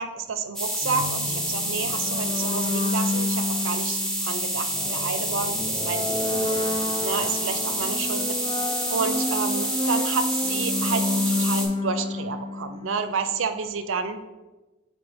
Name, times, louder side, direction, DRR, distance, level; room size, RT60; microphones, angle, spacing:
voice 1, 0.0-8.3 8.9-14.2, right 5 dB, 90° right, 9 dB, 0.5 m, -30 dB
sound 1, 0.6-11.7, right 1 dB, 5° left, 0.9 m, -28 dB
sound 2, 0.8-13.3, left 2 dB, 25° left, 0.3 m, -30 dB
9.2 x 3.2 x 3.4 m, 1.1 s
head